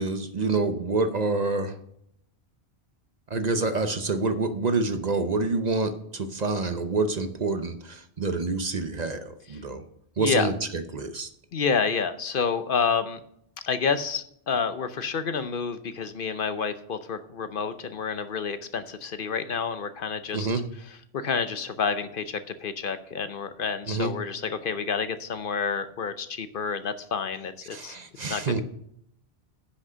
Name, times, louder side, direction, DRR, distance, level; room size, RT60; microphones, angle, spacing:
voice 1, 0.0-1.7 3.3-9.8 10.2-10.5 10.9-11.3 20.3-20.6 23.9-24.1 27.7-28.6, right 3 dB, 45° right, 8 dB, 0.8 m, -27 dB
voice 2, 10.2-10.5 11.5-13.2 13.6-28.0 28.3-28.6, left 5 dB, 60° left, 11 dB, 0.8 m, -29 dB
10.0 x 6.2 x 6.7 m, 0.71 s
omnidirectional pair, 1.1 m